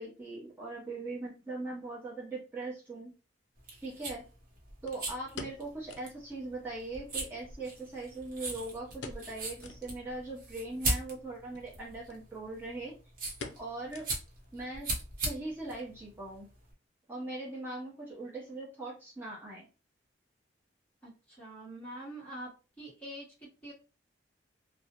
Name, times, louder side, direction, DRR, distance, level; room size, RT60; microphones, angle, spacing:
voice 1, 0.0-3.1 3.8-4.2 4.8-12.9 13.6-14.1 14.5-14.9 15.2-16.5 17.1-19.7, right 2 dB, 10° right, -5 dB, 0.6 m, -40 dB
sound 1, 2.8-2.9 4.9-6.2 6.5-6.6 6.9-7.0 7.6-8.5 9.0-9.3 9.6-9.9 10.4-10.5 11.4-11.7 12.1-12.2 12.5-12.8 13.4-14.5 14.8-14.9 15.4-15.8 16.1-16.2, left 4 dB, 75° left, 0.4 m, -47 dB
sound 2, 3.6-16.7, right 2 dB, 45° right, 0.8 m, -39 dB
voice 2, 21.0-23.7, right 1 dB, 10° left, -8 dB, 1.1 m, -45 dB
2.4 x 2.0 x 2.8 m, 0.32 s
head